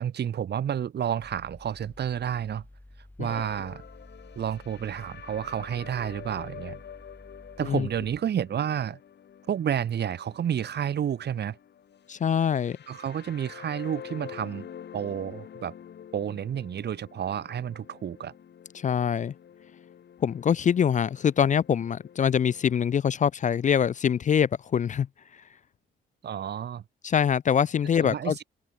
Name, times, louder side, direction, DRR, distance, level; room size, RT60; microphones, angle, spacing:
voice 1, 0.0-2.6 3.2-3.8 4.4-6.8 7.6-9.0 9.5-11.6 12.9-15.7 16.1-18.3 26.2-26.8 28.0-28.3, right 9 dB, 60° right, 2.4 m, -30 dB
Mechanical fan, 1.2-8.2, left 1 dB, 10° left, 3.8 m, -51 dB
sound 1, 3.3-22.8, left 9 dB, 60° left, 6.5 m, -47 dB
voice 2, 12.1-12.8 18.7-19.3 20.2-25.1 25.3-25.4 27.0-28.4, left 8 dB, 40° left, 0.5 m, -24 dB
cardioid pair, 90°, 20 cm